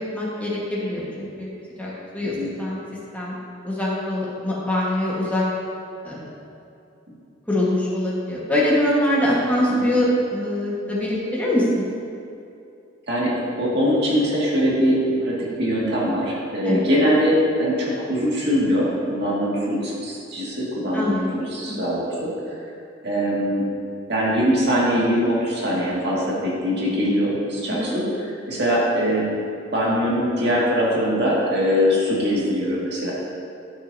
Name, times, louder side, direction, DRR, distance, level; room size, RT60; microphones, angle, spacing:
voice 1, 0.1-1.5 1.8-2.8 3.1-3.4 3.6-5.4 6.0-6.2 7.5-11.8 16.6-16.8 20.9-21.4 21.7-21.8 27.7-27.8, left 1 dB, 10° left, -6 dB, 1.3 m, -23 dB
voice 2, 13.6-22.3 23.0-23.7 24.1-29.3 29.7-33.1, equal, 60° right, -6 dB, 2.0 m, -22 dB
12.5 x 6.2 x 2.7 m, 2.6 s
head